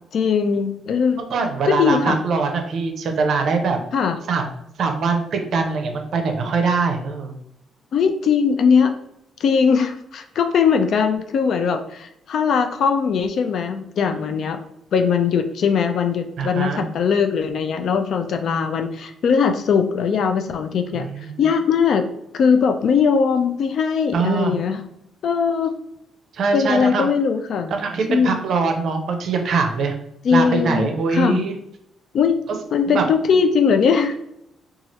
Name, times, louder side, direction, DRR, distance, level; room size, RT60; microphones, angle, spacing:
voice 1, 0.1-1.3 1.6-2.2 3.9-4.2 7.9-8.9 9.4-14.6 14.9-22.0 22.3-24.8 25.2-25.7 26.5-27.7 28.1-28.4 30.2-31.4 32.1-32.4 32.7-34.2, left 6 dB, 65° left, 7 dB, 0.3 m, -20 dB
voice 2, 1.2-3.8 4.3-7.4 14.1-14.4 16.4-16.9 20.9-21.4 24.1-24.5 26.3-27.1 27.7-30.0 30.3-31.5 32.5-32.6 32.9-33.1, right 4 dB, 65° right, 4 dB, 0.5 m, -23 dB
2.8 x 2.3 x 3.0 m, 0.77 s
cardioid pair, 90°, 0 cm